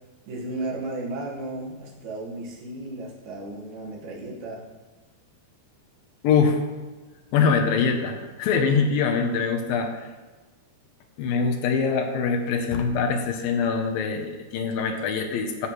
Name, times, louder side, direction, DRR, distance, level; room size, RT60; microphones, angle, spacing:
voice 1, 0.3-4.7, right 2 dB, 55° right, -3 dB, 2.6 m, -34 dB
voice 2, 6.2-6.6 7.3-10.0 11.2-15.7, left 5 dB, 75° left, 4 dB, 2.4 m, -23 dB
14.5 x 6.5 x 3.1 m, 1.2 s
omnidirectional pair, 4.6 m